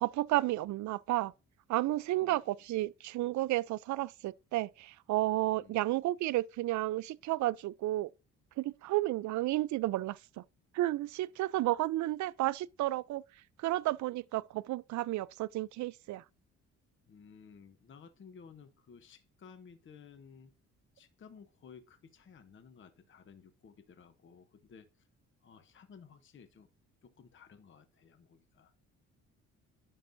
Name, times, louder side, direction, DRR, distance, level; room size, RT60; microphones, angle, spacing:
voice 1, 0.0-1.3 1.7-8.1 8.6-10.4 10.7-13.2 13.6-16.2, right 16 dB, 70° right, 0.4 m, -32 dB
voice 2, 17.1-20.6 20.9-25.1 25.4-26.7 27.0-28.7, left 6 dB, 40° left, 0.8 m, -56 dB
10.5 x 5.5 x 2.6 m
cardioid pair, 90°, 30 cm